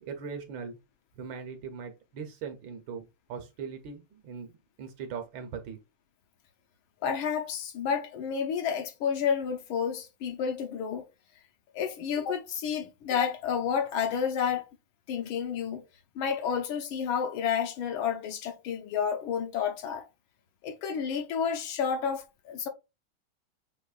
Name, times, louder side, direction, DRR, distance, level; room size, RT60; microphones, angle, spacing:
voice 1, 0.1-0.8 1.2-5.8, right 6 dB, 70° right, 1.4 m, -40 dB
voice 2, 7.0-11.0 11.7-14.7 15.1-15.8 16.1-20.1 20.6-22.7, left 7 dB, 75° left, 1.5 m, -30 dB
6.6 x 3.0 x 2.4 m
omnidirectional pair, 2.4 m